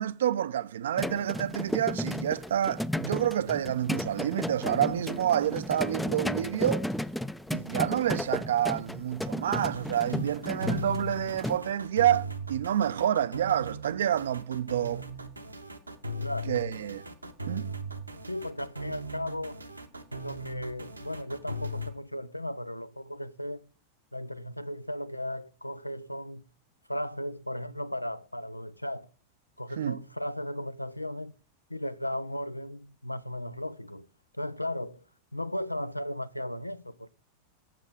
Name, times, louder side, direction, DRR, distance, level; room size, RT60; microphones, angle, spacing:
voice 1, 0.0-6.9 7.5-15.1 16.5-17.0 17.5-17.6 29.8-30.0, right 10 dB, 60° right, 0.4 m, -28 dB
sound 1, 1.0-11.6, left 1 dB, 5° left, 0.4 m, -34 dB
sound 2, 9.5-21.9, equal, 85° right, 0.9 m, -39 dB
voice 2, 16.2-16.6 18.3-19.6 20.2-23.7 24.1-26.4 26.9-29.1 29.6-31.3 31.7-34.1 34.4-35.0 35.3-37.1, left 1 dB, 85° left, 0.4 m, -36 dB
7.5 x 7.1 x 6.2 m
figure-of-eight pair, 90°, 0 cm